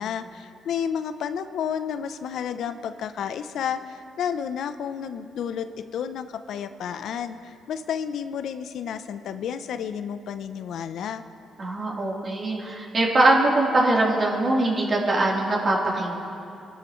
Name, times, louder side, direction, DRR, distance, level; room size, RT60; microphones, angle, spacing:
voice 1, 0.0-11.2, left 8 dB, 75° left, 10 dB, 0.6 m, -31 dB
voice 2, 11.6-16.1, right 2 dB, 40° right, -4 dB, 3.4 m, -22 dB
27.5 x 12.0 x 3.1 m, 2.8 s
cardioid pair, 90°, 0 cm